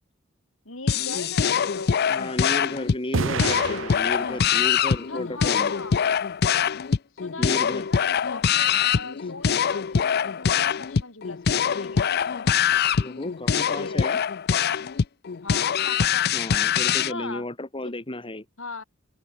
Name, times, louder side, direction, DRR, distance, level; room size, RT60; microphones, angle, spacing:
voice 1, 0.7-2.0 5.1-6.0 7.2-12.6 13.8-14.2 15.4-17.4 17.8-17.9 18.6-18.8, left 3 dB, 85° left, 7.4 m, -39 dB
sound 1, 0.9-17.1, left 7 dB, 50° left, 0.5 m, -23 dB
voice 2, 2.1-5.7 7.4-7.8 13.0-14.2 16.3-18.4, left 1 dB, 25° left, 2.5 m, -33 dB
sound 2, 3.1-4.8, right 4 dB, 70° right, 0.9 m, -29 dB
open air
head